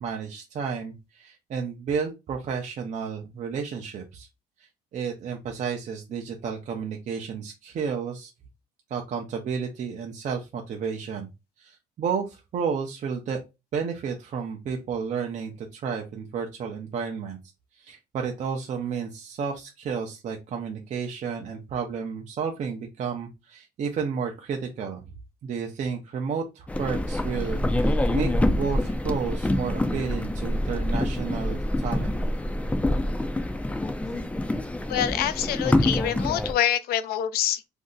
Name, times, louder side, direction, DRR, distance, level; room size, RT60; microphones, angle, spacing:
voice 1, 0.0-4.3 4.9-8.3 8.9-11.3 11.6-13.4 13.7-17.4 17.7-25.0 25.4-32.1 34.1-34.2, right 6 dB, 45° right, 0.5 m, -32 dB
sound 1, 26.7-36.5, left 1 dB, 10° left, 0.4 m, -26 dB
voice 2, 34.9-37.7, left 11 dB, 65° left, 0.4 m, -26 dB
2.6 x 2.1 x 3.7 m
cardioid pair, 110°, 17 cm